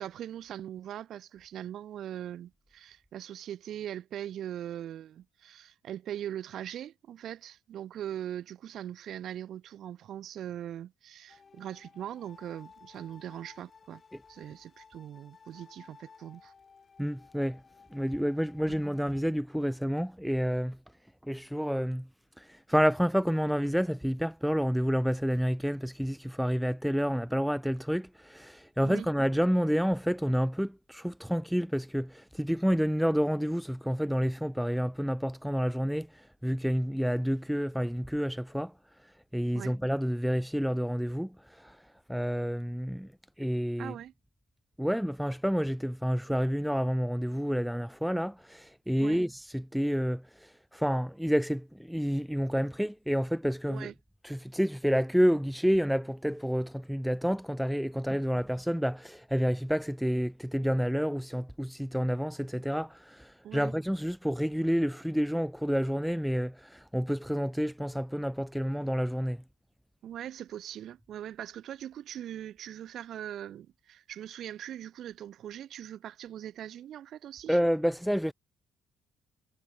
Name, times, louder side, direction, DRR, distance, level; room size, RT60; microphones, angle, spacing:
voice 1, 0.0-14.0 14.3-16.5 18.7-18.8 28.8-29.1 39.5-39.8 43.8-44.1 49.0-49.2 53.7-53.9 63.4-63.7 70.0-77.6, right 11 dB, 55° right, 1.0 m, -41 dB
sound 1, 11.3-19.2, left 5 dB, 35° left, 3.7 m, -57 dB
voice 2, 17.0-17.6 17.9-20.8 21.2-22.1 22.4-36.1 36.4-38.7 39.3-41.8 42.1-43.1 43.4-43.9 44.8-53.9 54.2-69.4 77.5-78.3, equal, ahead, 0.3 m, -29 dB
figure-of-eight pair, 50°, 0 cm